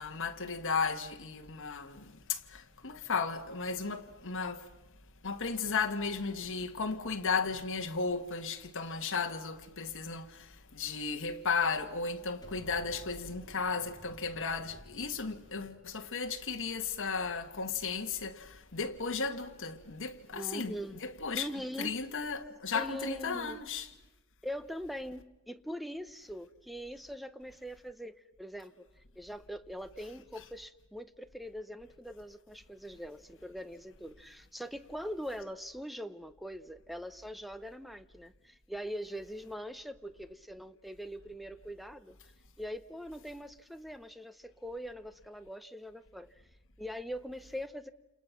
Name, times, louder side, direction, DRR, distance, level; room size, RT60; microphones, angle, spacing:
voice 1, 0.0-4.6 5.2-20.7 21.0-21.5 21.8-23.9, left 5 dB, 60° left, 1.8 m, -35 dB
Explosion, 12.4-17.6, equal, 20° left, 2.7 m, -55 dB
voice 2, 20.3-22.0 22.7-23.6 24.4-28.9 29.2-42.2 42.6-46.4 46.8-47.9, equal, ahead, 0.9 m, -42 dB
29.0 x 28.0 x 6.0 m
head